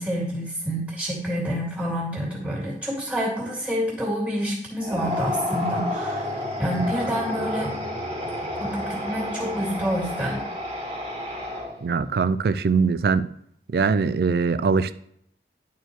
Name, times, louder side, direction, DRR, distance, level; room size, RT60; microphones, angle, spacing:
voice 1, 0.0-6.3 6.6-7.7 8.6-10.4, equal, 10° right, -4 dB, 2.4 m, -28 dB
sound 1, 4.8-12.0, left 1 dB, 35° right, 1.8 m, -30 dB
voice 2, 11.8-13.3 13.7-14.9, right 5 dB, 60° right, 14 dB, 0.3 m, -22 dB
11.0 x 4.4 x 3.1 m, 0.70 s
head